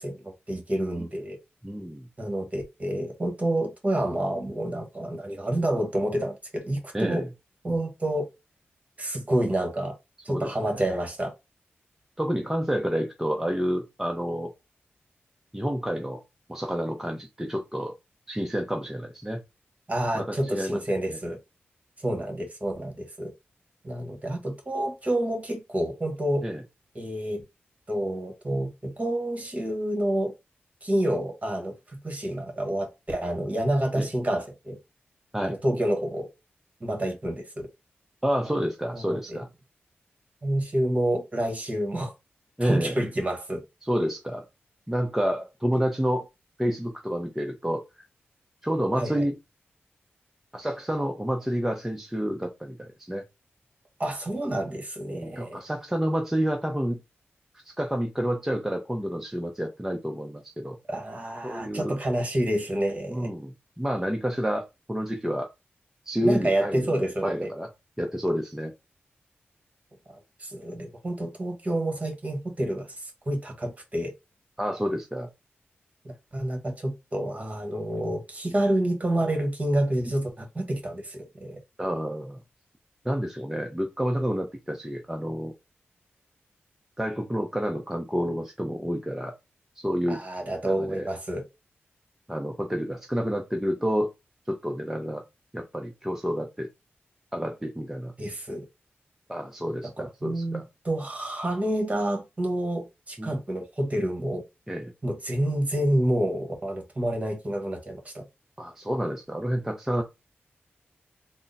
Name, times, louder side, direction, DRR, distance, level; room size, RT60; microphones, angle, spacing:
voice 1, 0.0-1.4 2.2-7.2 7.6-8.3 9.0-9.9 10.2-11.3 19.9-21.4 22.0-23.3 23.8-26.4 26.9-27.4 27.9-30.3 30.8-34.8 35.4-36.3 36.8-37.7 38.9-39.4 40.4-42.1 42.6-43.6 49.0-49.3 54.0-55.6 60.9-63.3 66.2-67.5 70.1-74.1 76.0-81.6 90.1-91.4 98.2-98.6 100.0-104.4 105.0-108.3, right 1 dB, 35° right, 1.5 m, -28 dB
voice 2, 1.6-2.1 6.9-7.3 10.3-10.8 12.2-14.5 15.5-16.2 16.5-17.9 18.3-19.4 20.1-20.2 20.5-20.8 21.1-21.2 26.4-26.6 33.9-34.1 35.3-35.6 38.2-39.5 42.6-43.0 43.8-44.5 44.9-46.3 46.6-48.0 48.6-49.4 50.5-53.2 55.1-57.0 57.6-60.8 61.4-62.0 63.1-65.5 66.0-67.7 68.0-68.7 74.6-75.3 81.8-82.4 83.0-85.5 87.0-89.3 89.8-90.2 90.6-91.1 92.3-94.1 94.5-95.2 95.5-96.7 97.3-98.1 99.3-100.6 103.2-103.4 104.7-104.9 108.6-110.0, equal, 10° right, 0.7 m, -29 dB
3.6 x 2.1 x 4.0 m
cardioid pair, 60°, 4 cm